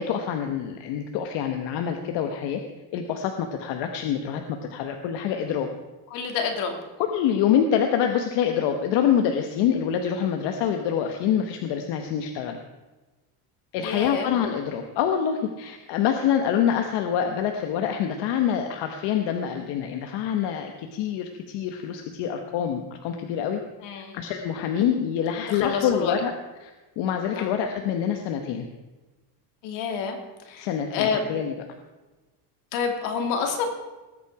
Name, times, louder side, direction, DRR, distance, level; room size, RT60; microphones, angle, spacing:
voice 1, 0.0-2.6 2.9-4.4 4.7-5.7 7.0-12.6 13.7-23.6 24.1-26.3 26.6-26.7 27.0-28.7 30.6-31.5, left 8 dB, 70° left, 5 dB, 1.2 m, -26 dB
voice 2, 6.1-6.7 13.8-14.3 23.8-24.1 25.5-26.1 27.3-27.5 29.6-30.2 30.5-31.2 32.7-33.6, left 6 dB, 85° left, 3 dB, 2.7 m, -28 dB
20.0 x 8.7 x 4.8 m, 1.2 s
cardioid pair, 165°, 43 cm